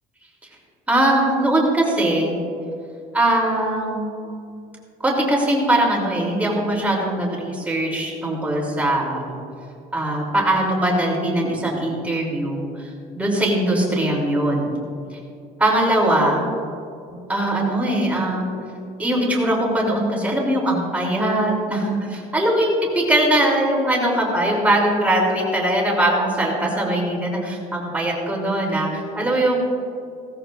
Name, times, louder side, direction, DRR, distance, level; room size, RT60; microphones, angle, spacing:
voice 1, 0.9-2.4 3.1-4.2 5.0-9.3 9.9-12.9 13.1-14.7 15.6-16.4 17.1-18.6 19.0-29.6, right 1 dB, 10° right, -3 dB, 3.3 m, -21 dB
17.0 x 14.5 x 2.6 m, 2.5 s
cardioid pair, 150°, 15 cm